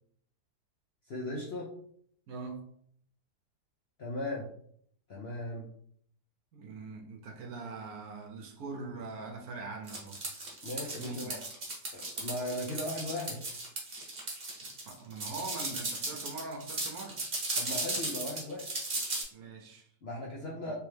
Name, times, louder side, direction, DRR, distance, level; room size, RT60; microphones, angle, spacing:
voice 1, 1.1-1.7 4.0-4.5 5.1-5.7 10.6-11.4 11.9-13.4 17.5-18.7 20.0-20.7, left 1 dB, 60° left, -3 dB, 0.6 m, -37 dB
voice 2, 2.3-2.7 6.5-10.2 11.0-11.4 14.9-17.2 19.3-19.9, right 3 dB, 70° right, 2 dB, 1.1 m, -42 dB
sound 1, 9.9-19.2, right 2 dB, 40° right, 1.1 m, -36 dB
3.4 x 3.1 x 3.2 m, 0.63 s
omnidirectional pair, 1.8 m